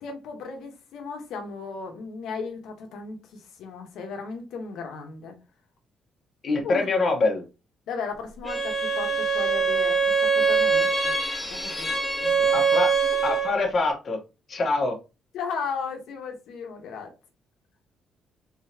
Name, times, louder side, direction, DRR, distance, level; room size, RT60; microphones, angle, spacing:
voice 1, 0.0-5.3 6.6-6.9 7.9-11.1 11.5-11.9 12.2-12.6 15.3-17.1, left 5 dB, 85° left, 1.2 m, -36 dB
voice 2, 6.4-7.4 12.5-12.9 13.2-14.2 14.5-15.0, left 3 dB, 45° left, 1.3 m, -24 dB
Bowed string instrument, 8.5-13.6, right 5 dB, 15° left, 0.9 m, -23 dB
3.9 x 3.9 x 2.9 m
cardioid pair, 90°, 0 cm